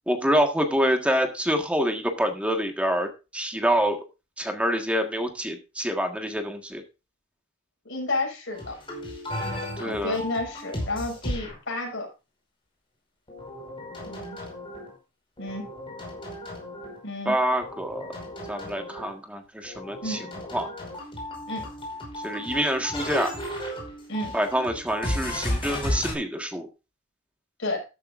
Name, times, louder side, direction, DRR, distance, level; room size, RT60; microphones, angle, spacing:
voice 1, 0.1-4.0 4.4-6.8 9.8-10.2 17.2-18.1 18.5-20.2 20.5-20.7 22.2-23.3 24.3-26.7, equal, 5° right, 4 dB, 1.6 m, -26 dB
voice 2, 7.8-8.7 9.8-12.1 14.0-14.4 15.4-15.7 17.0-17.3 20.0-20.3 21.5-21.7 24.1-24.3 27.6-27.8, left 2 dB, 60° left, 0 dB, 6.8 m, -31 dB
sound 1, 8.5-11.6 13.3-14.9 15.4-17.0 17.5-19.1 19.6-26.1, left 1 dB, 25° left, 5.1 m, -34 dB
13.5 x 12.0 x 2.6 m, 0.29 s
head